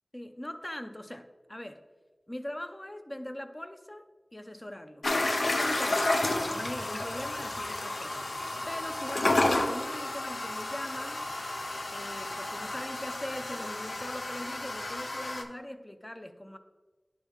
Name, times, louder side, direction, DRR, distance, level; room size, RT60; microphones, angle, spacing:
voice 1, 0.1-1.8 2.3-5.0 5.5-11.2 11.9-16.6, left 1 dB, 25° left, 8 dB, 0.6 m, -41 dB
sound 1, 5.0-15.4, left 2 dB, 80° left, 0.6 m, -31 dB
10.5 x 3.5 x 3.6 m, 1.2 s
wide cardioid pair, 50°, 0 cm